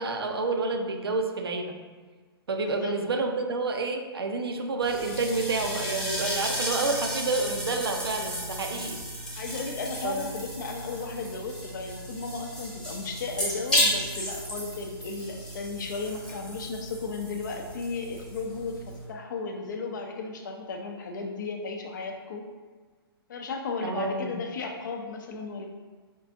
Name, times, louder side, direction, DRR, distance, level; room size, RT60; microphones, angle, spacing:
voice 1, 0.0-1.7 2.5-9.0 10.0-10.3 23.8-24.4, right 3 dB, 70° right, 4 dB, 0.5 m, -29 dB
voice 2, 2.7-3.0 9.4-22.4 23.3-25.7, left 4 dB, 50° left, 3 dB, 0.5 m, -35 dB
sound 1, 4.8-19.1, equal, 5° left, 0.8 m, -33 dB
5.2 x 2.4 x 2.5 m, 1.5 s
figure-of-eight pair, 120°, 13 cm